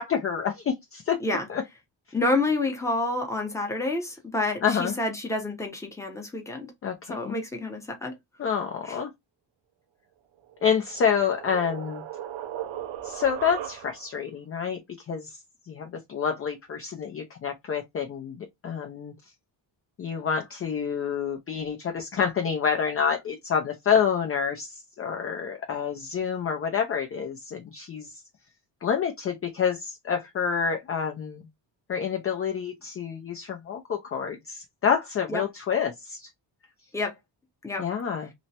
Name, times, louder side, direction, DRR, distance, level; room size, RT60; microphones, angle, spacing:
voice 1, 0.0-1.2 1.5-1.6 4.6-5.0 6.8-7.4 8.4-9.1 10.6-12.0 13.0-14.8 15.1-15.4 15.7-19.1 20.0-28.1 28.8-31.5 31.9-36.3 37.8-38.3, left 7 dB, 35° left, 0.4 m, -28 dB
voice 2, 2.1-6.7 7.1-8.1 8.9-9.0 35.3-35.4 36.9-37.1 37.6-37.8, left 2 dB, 5° left, 0.7 m, -28 dB
sound 1, 10.4-14.2, right 11 dB, 85° right, 0.6 m, -38 dB
2.9 x 2.1 x 2.7 m
cardioid pair, 115°, 45 cm